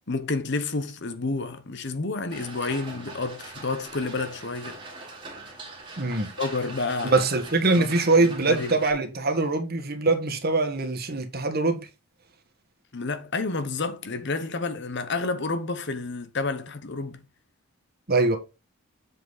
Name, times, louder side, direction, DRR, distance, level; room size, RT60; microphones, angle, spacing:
voice 1, 0.1-4.8 6.4-7.3 7.8-7.9 8.2-8.8 12.9-17.2, left 3 dB, 50° left, 0.9 m, -30 dB
sound 1, 2.3-8.9, right 3 dB, 20° right, 2.1 m, -42 dB
voice 2, 6.0-6.3 7.0-11.8 18.1-18.4, right 3 dB, 45° right, 1.5 m, -23 dB
7.6 x 5.4 x 4.0 m
head